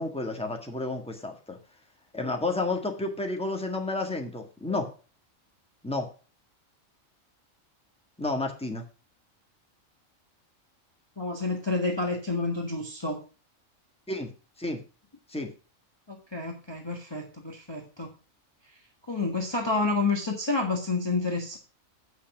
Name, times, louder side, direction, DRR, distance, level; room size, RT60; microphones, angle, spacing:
voice 1, 0.0-1.6 2.1-4.9 5.8-6.1 8.2-8.9 14.1-14.3 14.6-14.8 15.3-15.5, left 2 dB, 5° left, 2 dB, 1.6 m, -31 dB
voice 2, 11.2-13.2 16.1-18.1 18.6-18.8 19.1-21.6, left 3 dB, 20° left, 1 dB, 1.4 m, -29 dB
8.4 x 6.4 x 5.9 m, 0.34 s
omnidirectional pair, 1.4 m